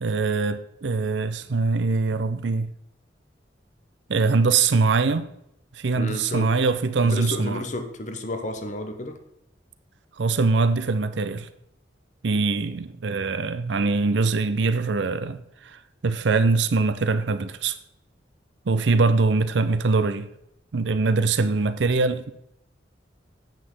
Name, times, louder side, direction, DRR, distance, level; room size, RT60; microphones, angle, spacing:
voice 1, 0.0-2.7 4.1-5.3 5.8-7.6 10.2-11.5 12.2-17.7 18.7-20.3 20.7-22.3, right 4 dB, 85° right, 0.6 m, -23 dB
voice 2, 5.9-6.5 7.0-9.2, left 1 dB, 45° left, 1.0 m, -31 dB
9.0 x 8.0 x 3.7 m
head